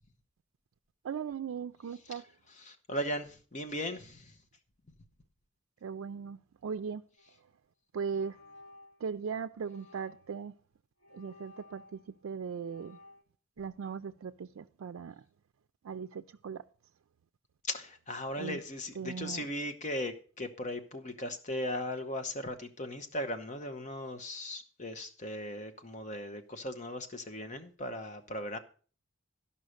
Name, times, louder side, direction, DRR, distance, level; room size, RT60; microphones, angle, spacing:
voice 1, 1.0-2.3 5.8-7.0 7.9-8.4 9.0-10.6 11.1-13.0 13.6-15.2 15.8-16.6 18.4-18.6 19.0-19.5, right 6 dB, 90° right, 0.4 m, -38 dB
voice 2, 2.6-4.4 17.7-28.6, left 1 dB, 35° left, 0.9 m, -38 dB
sound 1, 7.2-7.4 8.0-9.0 9.6-10.4 11.0-12.2 12.6-13.2, left 2 dB, 60° left, 3.0 m, -56 dB
12.5 x 5.6 x 6.4 m
head